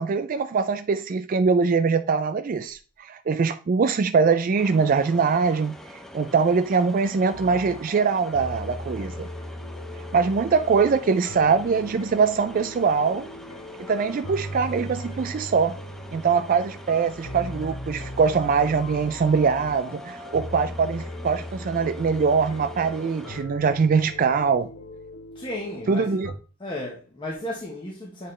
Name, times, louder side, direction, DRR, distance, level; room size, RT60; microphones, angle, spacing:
voice 1, 0.0-5.8 6.1-9.3 10.1-13.3 13.9-15.8 16.1-24.7 25.9-26.3, right 5 dB, 40° right, 0.3 m, -22 dB
sound 1, 4.6-23.4, left 1 dB, ahead, 0.7 m, -44 dB
sound 2, 7.3-26.3, left 1 dB, 85° left, 1.2 m, -38 dB
voice 2, 25.3-26.2 26.6-28.3, left 1 dB, 25° left, 1.1 m, -34 dB
8.3 x 3.8 x 3.2 m
head